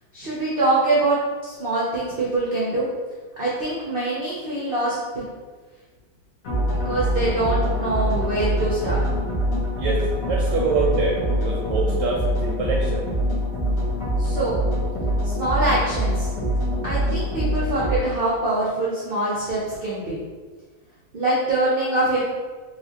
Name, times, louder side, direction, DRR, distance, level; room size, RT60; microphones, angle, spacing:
voice 1, 0.1-2.9 3.4-5.2 6.7-9.0 14.2-14.6 15.2-16.3 16.8-20.2 21.1-22.2, right 2 dB, 65° right, -7 dB, 0.5 m, -24 dB
sound 1, 6.4-18.0, equal, 55° left, 1.2 m, -24 dB
voice 2, 9.8-13.1, right 3 dB, 85° right, -3 dB, 1.2 m, -25 dB
4.0 x 2.4 x 2.8 m, 1.4 s
omnidirectional pair, 1.9 m